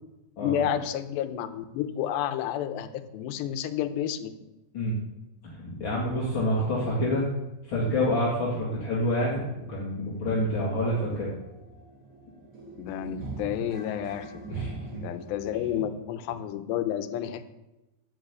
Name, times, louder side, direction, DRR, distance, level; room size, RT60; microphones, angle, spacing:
voice 1, 0.4-4.3 12.8-14.4 15.0-17.4, left 10 dB, 85° left, 10 dB, 2.9 m, -30 dB
voice 2, 5.4-7.3 7.7-11.3 14.5-14.7, left 1 dB, 40° left, -5 dB, 2.0 m, -27 dB
sound 1, 8.9-9.0 9.4-9.5 9.8-15.8, right 3 dB, 25° right, 2.3 m, -43 dB
12.5 x 6.3 x 8.1 m, 0.99 s
omnidirectional pair, 4.9 m